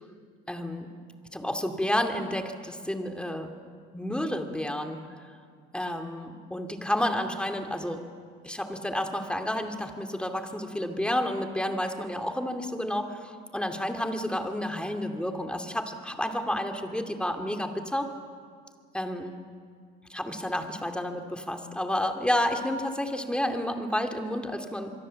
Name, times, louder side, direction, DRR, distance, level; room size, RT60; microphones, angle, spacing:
voice 1, 0.5-0.9 1.3-3.5 3.9-5.0 5.7-8.0 8.4-18.1 18.9-19.4 20.1-24.9, left 1 dB, 5° left, 5 dB, 2.6 m, -30 dB
26.0 x 23.0 x 7.7 m, 2.1 s
cardioid pair, 100°, 20 cm